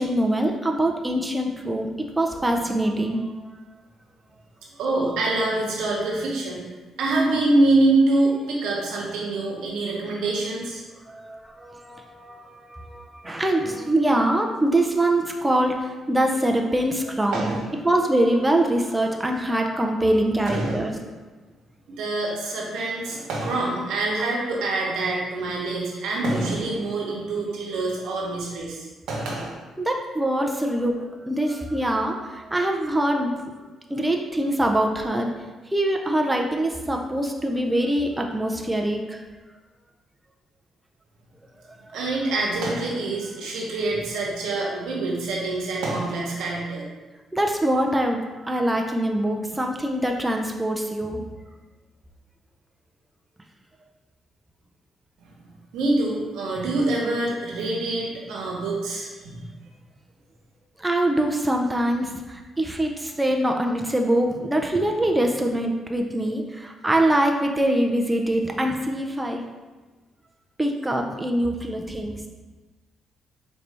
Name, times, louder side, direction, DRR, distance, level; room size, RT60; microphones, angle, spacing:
voice 1, 0.0-3.5 11.1-17.6 17.8-20.9 29.8-33.3 33.9-35.3 35.7-39.2 41.7-42.3 47.3-51.2 60.8-69.4 70.6-72.2, right 1 dB, 10° right, 2 dB, 0.4 m, -24 dB
voice 2, 4.8-6.6 7.0-10.8 17.3-17.6 20.5-20.9 21.9-29.5 41.9-46.8 55.2-55.3 55.7-59.5, right 2 dB, 85° right, -3 dB, 1.0 m, -25 dB
4.2 x 2.7 x 3.3 m, 1.2 s
cardioid pair, 90°, 0 cm